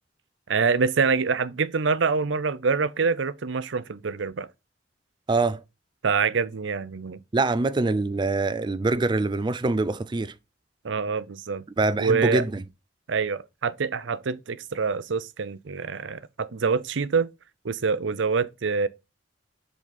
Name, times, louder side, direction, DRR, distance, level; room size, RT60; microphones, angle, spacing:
voice 1, 0.5-4.5 6.0-7.2 10.8-11.6 12.0-12.4 13.1-17.3 17.6-18.9, right 5 dB, 85° right, 0.6 m, -25 dB
voice 2, 5.3-5.6 7.3-10.3 11.8-12.6, right 3 dB, 25° right, 0.4 m, -24 dB
7.3 x 4.0 x 4.0 m
head